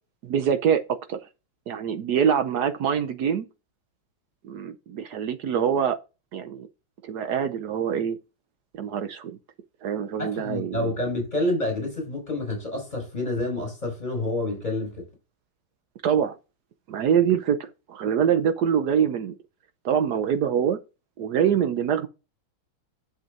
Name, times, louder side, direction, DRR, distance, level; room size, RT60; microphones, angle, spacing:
voice 1, 0.2-1.2 1.7-3.4 4.4-6.0 6.3-6.7 7.0-8.2 8.7-9.4 9.8-10.9 16.0-16.3 16.9-19.3 19.8-20.8 21.2-22.1, right 8 dB, 65° right, 1.0 m, -24 dB
voice 2, 10.2-15.1, left 1 dB, 20° left, 6.0 m, -28 dB
10.5 x 7.2 x 2.5 m
omnidirectional pair, 2.2 m